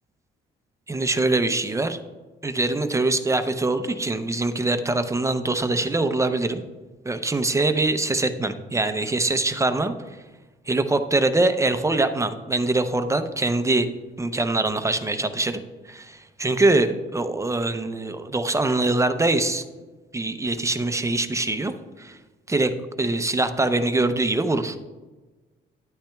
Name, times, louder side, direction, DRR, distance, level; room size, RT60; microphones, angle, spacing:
voice 1, 0.9-2.0 2.4-6.6 7.0-9.9 10.7-13.9 14.2-15.6 15.9-19.6 20.1-21.7 22.0-22.2 22.5-24.8, right 2 dB, 15° right, 9 dB, 0.6 m, -23 dB
10.5 x 8.7 x 2.3 m, 1.2 s
cardioid pair, 90°, 20 cm